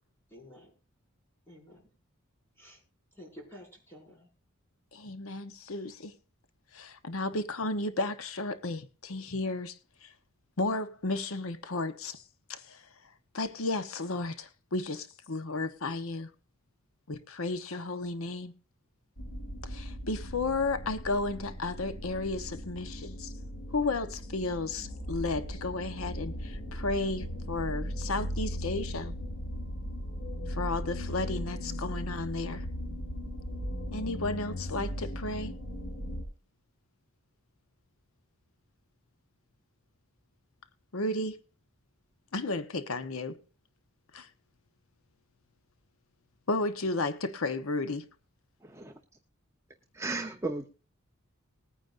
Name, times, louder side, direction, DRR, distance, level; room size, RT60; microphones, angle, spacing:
voice 1, 0.3-0.7 1.5-1.8 2.6-2.8 3.2-4.3, equal, 10° left, 5.6 m, -50 dB
voice 2, 4.9-6.1 6.7-10.1 10.6-12.2 12.5-12.9 13.3-16.3 17.1-18.5 19.6-23.3 23.7-29.1 30.5-32.6 33.9-35.5 40.9-41.4 42.3-43.4 44.1-44.3 46.5-48.0, left 2 dB, 85° left, 1.0 m, -33 dB
sound 1, 19.2-36.2, equal, 60° left, 5.3 m, -38 dB
voice 3, 48.6-49.0 49.9-50.7, right 3 dB, 15° right, 0.7 m, -35 dB
20.5 x 9.2 x 2.5 m
head